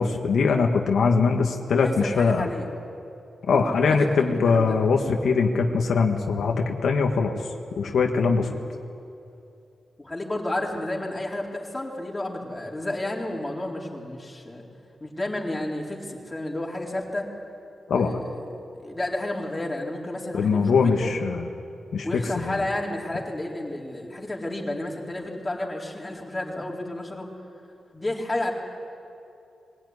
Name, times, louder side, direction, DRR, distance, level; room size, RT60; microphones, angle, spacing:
voice 1, 0.0-2.5 3.5-7.3 7.8-8.6 17.9-18.2 20.3-21.4 21.9-22.6, left 5 dB, 85° left, 3 dB, 1.5 m, -22 dB
voice 2, 1.8-2.7 3.5-4.8 10.0-14.6 15.0-17.3 17.9-18.4 18.8-21.1 22.0-27.3 27.9-28.5, left 1 dB, 20° left, -2 dB, 4.2 m, -31 dB
21.5 x 17.0 x 9.7 m, 2.6 s
cardioid pair, 75°, 0 cm